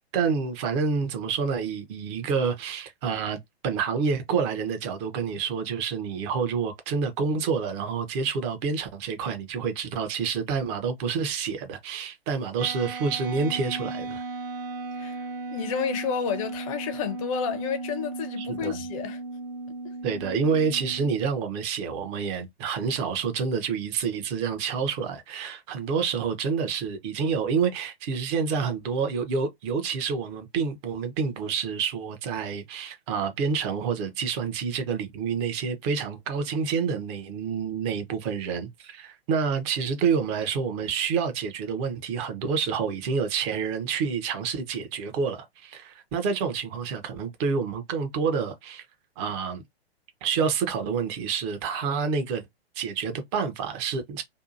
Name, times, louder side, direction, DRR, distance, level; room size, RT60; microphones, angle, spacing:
voice 1, 0.1-14.2 18.4-18.8 20.0-48.9 49.2-49.6 50.2-52.4 52.8-54.2, right 6 dB, 25° right, 0.5 m, -28 dB
sound 1, 12.6-21.1, right 3 dB, 65° right, 0.8 m, -36 dB
voice 2, 14.9-19.2 19.8-19.9, left 7 dB, 35° left, 0.5 m, -31 dB
2.7 x 2.3 x 2.5 m
figure-of-eight pair, 120°, 31 cm